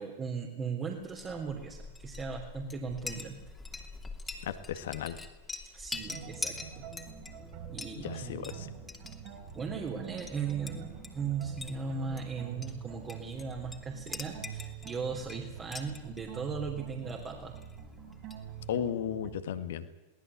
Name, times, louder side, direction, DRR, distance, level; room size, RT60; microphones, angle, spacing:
voice 1, 0.0-3.4 5.7-6.8 7.7-8.7 9.5-17.5, right 5 dB, 25° right, 0 dB, 3.2 m, -37 dB
Chink clink, 1.0-18.8, left 3 dB, 10° left, 2.8 m, -46 dB
voice 2, 4.4-5.2 8.0-8.7 18.7-19.9, left 9 dB, 60° left, 10 dB, 1.9 m, -35 dB
sound 1, 5.9-19.4, right 8 dB, 45° right, 4.9 m, -46 dB
22.5 x 18.5 x 8.3 m, 1.0 s
figure-of-eight pair, 90°, 0 cm